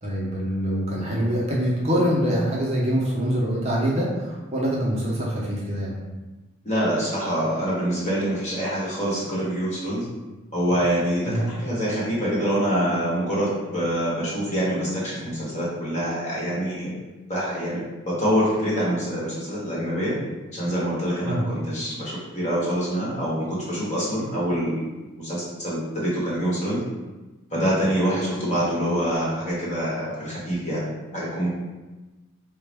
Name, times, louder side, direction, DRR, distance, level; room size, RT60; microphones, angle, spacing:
voice 1, 0.0-6.0 11.2-11.4 21.2-21.4, equal, 30° right, -5 dB, 0.6 m, -24 dB
voice 2, 6.6-10.1 10.5-16.9 17.3-20.1 20.5-24.9 25.2-26.8 27.5-31.5, equal, 35° left, -7 dB, 1.1 m, -25 dB
3.9 x 2.2 x 3.3 m, 1.1 s
head